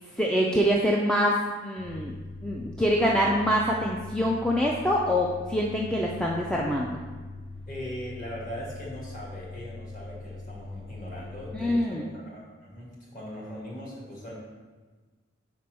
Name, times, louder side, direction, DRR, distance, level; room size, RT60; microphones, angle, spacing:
voice 1, 0.2-2.1 2.4-6.9 11.5-12.1, equal, 5° left, -3 dB, 0.4 m, -25 dB
sound 1, 1.8-11.8, left 2 dB, 65° left, 1.5 m, -42 dB
voice 2, 7.7-14.4, equal, 40° left, -5 dB, 2.0 m, -40 dB
5.1 x 4.5 x 6.1 m, 1.3 s
head